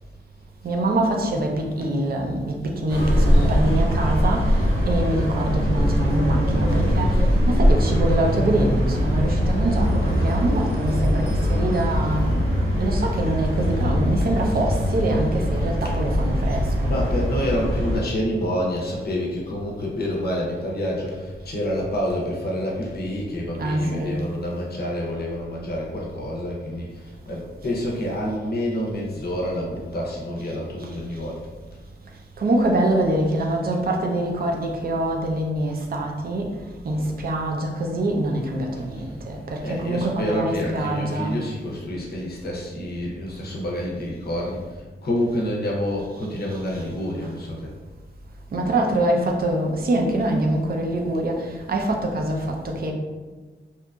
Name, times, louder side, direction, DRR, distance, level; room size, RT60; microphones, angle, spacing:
voice 1, 0.6-16.9 23.6-24.2 30.8-30.9 32.4-36.5 36.8-41.3 46.7-46.8 48.5-52.9, right 1 dB, 45° right, 1 dB, 0.4 m, -24 dB
sound 1, 2.9-18.0, equal, 80° right, 0.7 m, -21 dB
voice 2, 13.6-14.3 15.8-15.9 16.8-31.5 38.7-39.2 39.6-47.7 51.4-51.5, equal, 50° left, -3 dB, 0.6 m, -28 dB
2.8 x 2.4 x 2.2 m, 1.3 s
wide cardioid pair, 175°, 21 cm